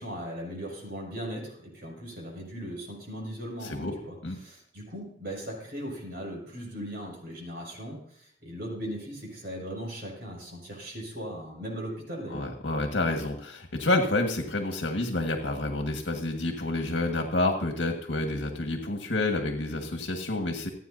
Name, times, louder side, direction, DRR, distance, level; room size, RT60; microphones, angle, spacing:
voice 1, 0.0-4.1 4.4-12.5, equal, 60° right, -2 dB, 6.1 m, -38 dB
voice 2, 3.6-3.9 4.2-4.4 12.3-20.7, left 2 dB, 80° left, 4 dB, 1.6 m, -29 dB
27.0 x 9.3 x 2.7 m, 0.66 s
head